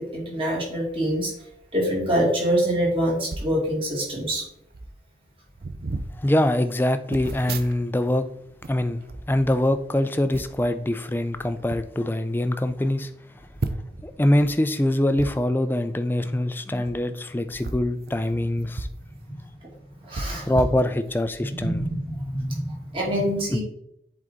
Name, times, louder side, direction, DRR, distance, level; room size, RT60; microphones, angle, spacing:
voice 1, 0.1-1.3 1.7-4.4 19.3-19.4 20.0-20.5 21.6-23.6, equal, 30° right, -3 dB, 2.3 m, -25 dB
sound 1, 3.3-3.6 4.4-4.5 4.7-5.0 5.6-6.1 7.1-8.1 8.4-9.8 10.3-10.7 11.4-11.8 12.4-12.5 12.7-12.8 13.6-14.1 15.1-15.3 16.7-16.9 17.5-19.0 19.3-19.4 20.1-21.3 21.8-22.0, right 2 dB, 55° right, 0.5 m, -34 dB
voice 2, 6.2-8.3 8.7-9.0 9.3-13.1 14.0-18.9 20.5-21.8 23.5-23.6, left 1 dB, 10° left, 10 dB, 0.3 m, -24 dB
7.7 x 4.0 x 3.6 m, 0.75 s
head